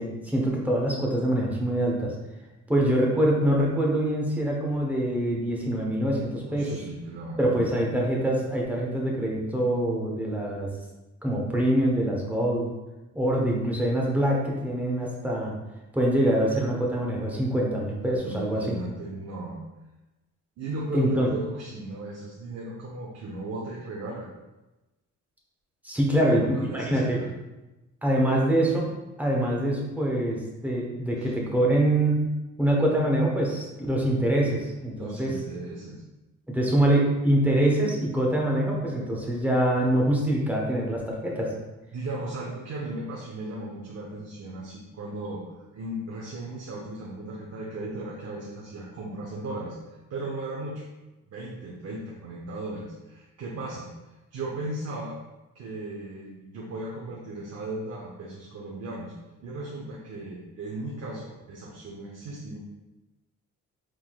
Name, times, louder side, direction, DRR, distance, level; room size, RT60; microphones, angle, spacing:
voice 1, 0.0-2.1 2.7-6.8 7.4-10.7 11.2-12.7 13.1-15.5 15.9-18.8 20.9-21.3 25.8-27.2 28.0-28.9 29.2-32.2 32.6-35.3 36.5-41.5, right 1 dB, 5° right, -2 dB, 1.1 m, -24 dB
voice 2, 6.4-7.6 18.2-19.7 20.6-24.3 26.1-27.3 31.2-31.3 34.9-36.0 41.9-49.8 50.1-50.8 51.3-53.9 54.3-55.2 55.5-59.1 59.4-62.6, right 2 dB, 55° right, -3 dB, 0.9 m, -36 dB
4.5 x 3.7 x 2.4 m, 1.1 s
cardioid pair, 90°, 30 cm